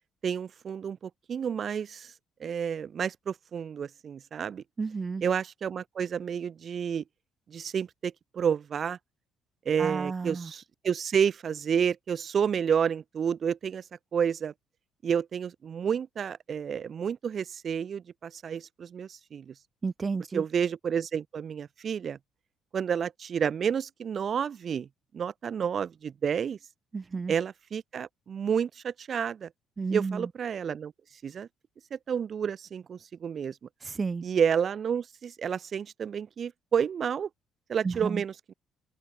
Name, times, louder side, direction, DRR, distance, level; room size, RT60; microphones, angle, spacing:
voice 1, 0.2-2.1 2.4-4.6 5.2-7.0 7.5-9.0 9.7-13.8 14.1-14.5 15.0-19.5 20.3-22.2 22.7-24.9 25.1-26.6 27.3-29.5 29.9-30.9 31.2-31.5 31.9-33.6 34.2-37.3 37.7-38.5, right 7 dB, 45° right, 2.2 m, -30 dB
voice 2, 4.8-5.2 9.8-10.5 19.8-20.4 26.9-27.3 29.8-30.3 33.8-34.2 37.8-38.2, right 4 dB, 25° right, 4.4 m, -31 dB
cardioid pair, 110°, 0 cm